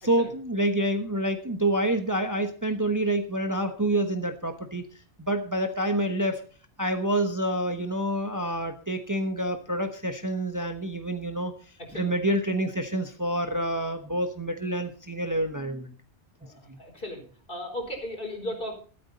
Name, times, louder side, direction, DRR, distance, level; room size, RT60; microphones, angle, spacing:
voice 1, 0.0-4.8 5.2-6.4 6.8-11.5 11.9-15.9 16.7-16.8, right 1 dB, 20° right, 7 dB, 1.1 m, -27 dB
voice 2, 11.8-12.1 16.4-17.2 17.5-18.8, left 1 dB, 55° left, 3 dB, 4.4 m, -36 dB
13.5 x 12.5 x 4.2 m, 0.41 s
omnidirectional pair, 1.1 m